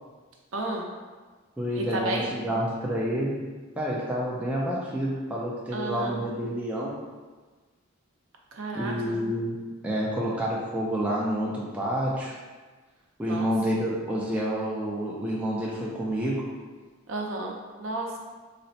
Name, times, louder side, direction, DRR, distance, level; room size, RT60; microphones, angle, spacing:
voice 1, 0.5-0.9 1.8-2.2 5.7-6.2 8.5-9.2 13.2-13.5 17.1-18.2, right 2 dB, 65° right, 0 dB, 0.5 m, -32 dB
voice 2, 1.6-3.4 3.8-6.9 8.7-9.6 9.8-12.3 13.2-16.5, equal, 5° right, -5 dB, 0.3 m, -28 dB
4.0 x 2.1 x 2.6 m, 1.4 s
head